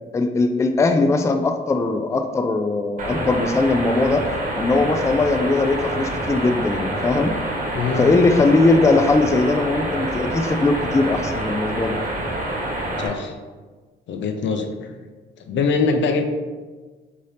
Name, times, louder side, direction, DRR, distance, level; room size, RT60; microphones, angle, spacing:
voice 1, 0.1-4.2 4.5-7.3 8.0-12.0, left 3 dB, 15° left, 6 dB, 0.3 m, -19 dB
sound 1, 3.0-13.1, right 1 dB, 40° right, 1.1 m, -27 dB
voice 2, 7.7-8.1 13.0-13.3 14.1-14.9 15.4-16.3, left 4 dB, 65° left, 6 dB, 0.5 m, -23 dB
5.1 x 2.8 x 3.3 m, 1.4 s
cardioid pair, 90°, 20 cm